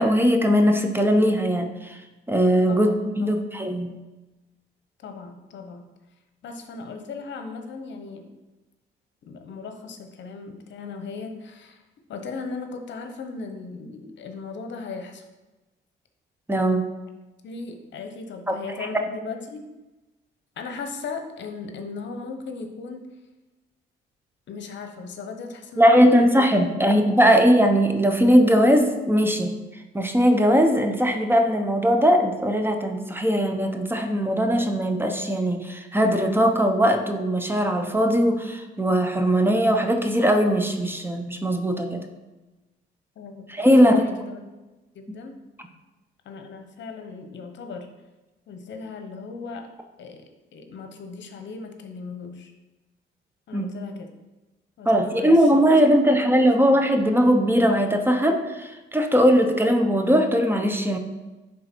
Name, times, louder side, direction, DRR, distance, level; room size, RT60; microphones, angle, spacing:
voice 1, 0.0-2.0 2.3-2.9 3.2-3.9 16.5-16.8 18.5-18.6 25.8-42.1 43.5-44.0 53.5-53.7 54.8-61.0, equal, 10° right, 5 dB, 0.9 m, -20 dB
voice 2, 2.7-3.4 5.0-5.9 6.4-8.3 9.2-11.8 12.1-15.2 17.4-19.7 20.6-23.1 24.5-27.3 43.2-44.5 44.9-45.4 46.2-47.9 48.5-49.7 50.0-52.5 53.5-54.1 54.8-55.6 56.0-56.8, left 4 dB, 65° left, 6 dB, 1.0 m, -37 dB
10.0 x 3.8 x 4.5 m, 1.1 s
cardioid pair, 90°, 20 cm